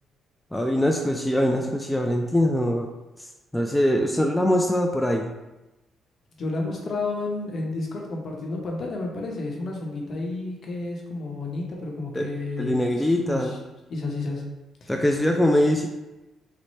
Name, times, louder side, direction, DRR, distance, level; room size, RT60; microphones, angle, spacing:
voice 1, 0.5-2.9 3.5-5.3 12.1-12.3 12.6-13.5 14.9-15.9, left 1 dB, 5° left, 1 dB, 0.3 m, -22 dB
voice 2, 6.4-12.8 13.2-13.6 13.9-14.4 14.8-14.9, left 2 dB, 50° left, 0 dB, 0.8 m, -31 dB
4.1 x 2.0 x 3.1 m, 1.0 s
cardioid pair, 90°, 0 cm